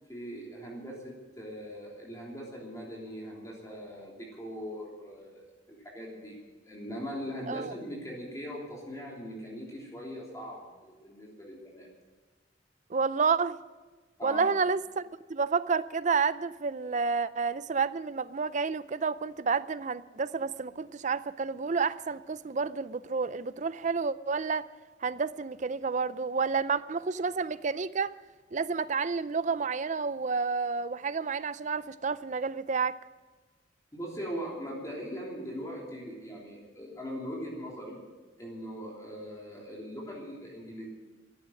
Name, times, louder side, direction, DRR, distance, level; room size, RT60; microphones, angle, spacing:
voice 1, 0.1-6.4 6.7-11.9 14.2-14.5 33.9-38.0 38.4-40.9, equal, 20° left, -3 dB, 3.3 m, -40 dB
voice 2, 12.9-13.6 14.2-24.7 25.0-28.1 28.5-33.0, right 5 dB, 40° right, 16 dB, 0.5 m, -30 dB
14.5 x 11.0 x 7.7 m, 1.3 s
head